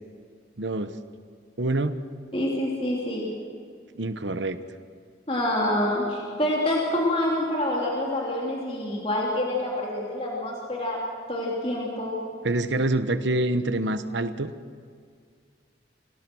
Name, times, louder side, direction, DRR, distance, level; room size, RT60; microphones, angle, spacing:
voice 1, 0.6-0.9 1.6-2.0 3.9-4.6 12.4-14.5, right 2 dB, 80° right, 11 dB, 1.1 m, -26 dB
voice 2, 2.3-3.3 5.3-11.0 11.3-12.2, left 1 dB, 30° left, -3 dB, 3.3 m, -27 dB
26.0 x 17.5 x 6.3 m, 2.2 s
head